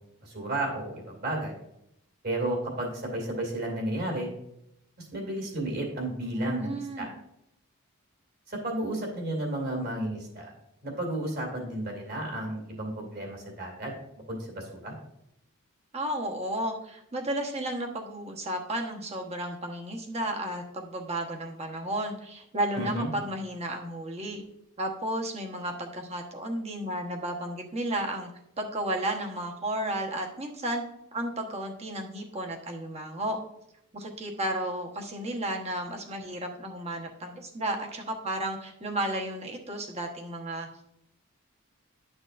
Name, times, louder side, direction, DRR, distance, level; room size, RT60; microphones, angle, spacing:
voice 1, 0.2-1.6 2.2-4.3 5.0-7.1 8.5-10.5 10.8-13.9 14.3-14.9 22.8-23.1, right 1 dB, 45° right, 0 dB, 2.5 m, -32 dB
voice 2, 6.3-7.1 15.9-24.4 24.8-28.3 28.6-30.8 31.1-33.4 33.9-40.7, right 1 dB, 30° right, 2 dB, 1.1 m, -33 dB
11.5 x 6.3 x 2.5 m, 0.79 s
head